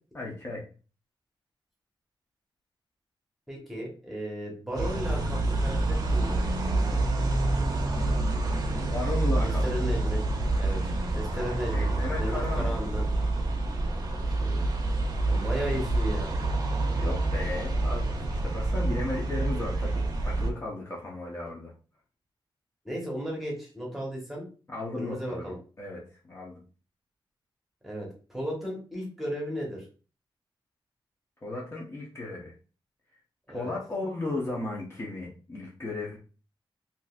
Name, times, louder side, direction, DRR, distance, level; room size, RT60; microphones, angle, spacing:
voice 1, 0.1-0.6 8.9-9.8 11.3-12.8 17.0-21.7 24.7-26.6 31.4-32.5 33.5-36.2, left 2 dB, 30° left, -4 dB, 0.8 m, -35 dB
voice 2, 3.5-6.3 9.4-10.2 10.6-10.8 11.1-11.9 12.2-13.1 13.9-14.7 15.3-16.3 22.8-24.5 24.9-25.6 27.8-29.8 33.5-33.7, equal, ahead, -2 dB, 1.2 m, -35 dB
sound 1, 4.8-20.5, right 2 dB, 45° right, 0.7 m, -27 dB
3.7 x 2.8 x 2.4 m, 0.37 s
wide cardioid pair, 140°, 9 cm